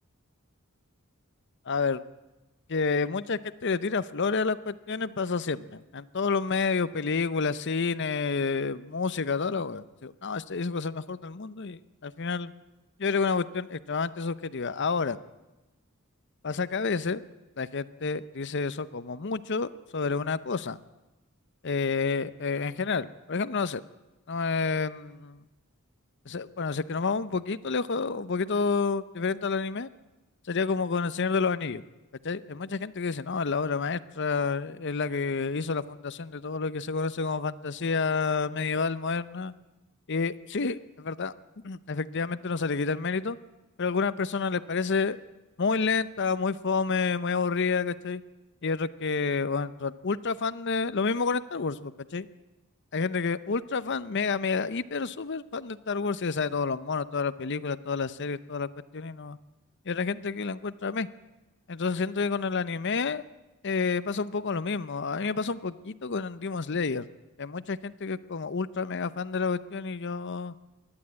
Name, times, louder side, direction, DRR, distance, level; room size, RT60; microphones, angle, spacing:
voice 1, 1.7-2.0 2.7-12.5 13.0-15.2 16.4-17.2 17.6-20.8 21.6-23.8 24.3-25.4 26.3-29.9 30.5-31.8 32.2-39.5 40.1-41.3 41.6-43.4 43.8-45.2 45.6-48.2 48.6-52.3 52.9-59.4 59.9-61.1 61.7-63.2 63.6-67.1 67.4-70.5, left 4 dB, 55° left, 15 dB, 0.7 m, -29 dB
26.5 x 11.5 x 8.8 m, 1.1 s
head